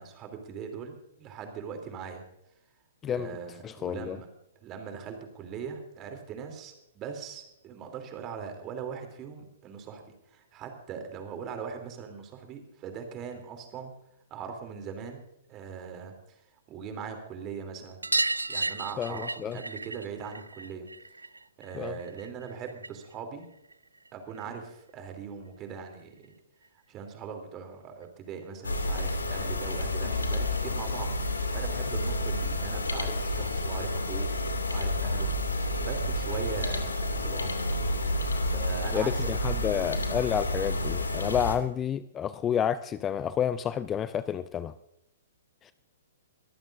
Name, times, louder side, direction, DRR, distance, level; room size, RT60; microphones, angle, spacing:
voice 1, 0.0-2.2 3.0-4.3 4.6-13.9 14.3-15.2 15.5-18.0 18.5-20.9 21.6-23.5 24.1-26.3 26.9-31.1 31.5-34.3 34.7-35.3 35.6-37.6 38.4-39.3 39.6-39.7, right 6 dB, 25° right, 5 dB, 3.1 m, -40 dB
voice 2, 3.6-4.2 19.0-19.6 21.7-22.0 38.9-44.7 45.6-45.7, left 9 dB, 20° left, 15 dB, 0.4 m, -30 dB
sound 1, 18.0-23.1 23.4-24.6 25.9-26.0 26.2-26.3 26.6-26.7 28.0-28.1 28.4-28.5 28.8-28.9 30.2-30.3 31.0-31.1, right 3 dB, 85° right, 0.4 m, -34 dB
sound 2, 28.6-41.6, left 1 dB, 80° left, 2.3 m, -30 dB
22.5 x 14.5 x 2.6 m, 0.82 s
figure-of-eight pair, 120°, 0 cm